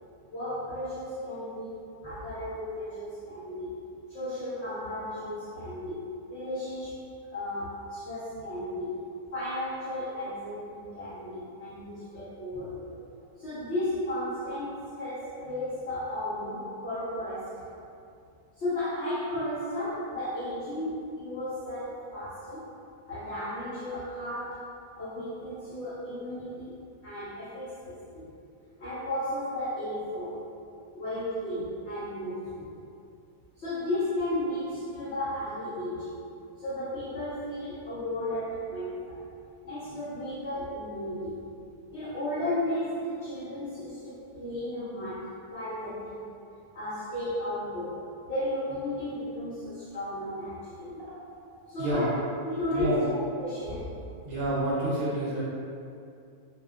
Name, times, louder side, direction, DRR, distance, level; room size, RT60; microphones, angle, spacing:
voice 1, 0.3-3.8 4.1-7.0 7.3-9.0 9.3-12.9 13.4-17.7 18.6-22.6 23.1-26.8 27.0-28.3 28.8-30.4 30.9-32.7 33.6-36.2 36.6-39.2 39.6-41.6 41.9-46.3 46.7-51.0 51.7-52.2 52.4-54.0, left 1 dB, 65° left, -12 dB, 0.7 m, -34 dB
voice 2, 54.2-55.4, right 1 dB, 70° right, -8 dB, 0.8 m, -28 dB
2.6 x 2.1 x 2.3 m, 2.5 s
omnidirectional pair, 1.7 m